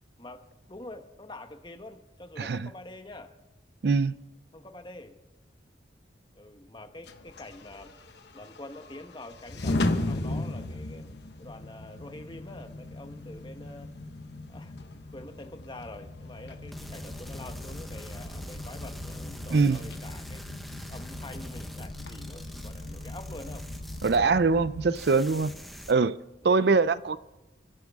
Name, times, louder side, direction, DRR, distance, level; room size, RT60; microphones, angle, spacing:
voice 1, 0.2-3.3 4.5-5.2 6.3-7.9 8.3-11.1 11.4-13.9 14.5-14.8 15.1-20.5 20.9-23.7 26.4-26.9, left 1 dB, 25° left, 1.2 m, -46 dB
voice 2, 2.4-2.7 3.8-4.2 19.5-19.8 24.0-25.5 25.9-26.2 26.4-27.2, right 4 dB, 60° right, 0.4 m, -23 dB
sound 1, 7.0-24.9, left 2 dB, 65° left, 1.1 m, -37 dB
sound 2, 16.7-24.7 25.0-25.9, equal, ahead, 0.9 m, -44 dB
30.0 x 11.0 x 3.6 m
head